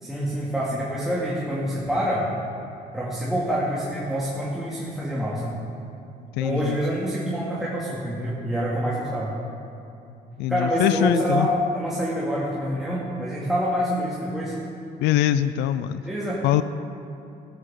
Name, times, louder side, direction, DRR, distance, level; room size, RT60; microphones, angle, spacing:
voice 1, 0.0-2.2 2.9-5.6 6.4-9.3 10.5-14.5 16.0-16.4, equal, ahead, -7 dB, 2.5 m, -26 dB
voice 2, 6.3-6.8 10.4-11.5 15.0-16.0 16.4-16.6, left 12 dB, 90° left, 13 dB, 0.5 m, -23 dB
16.0 x 14.0 x 3.8 m, 2.6 s
cardioid pair, 110°, 17 cm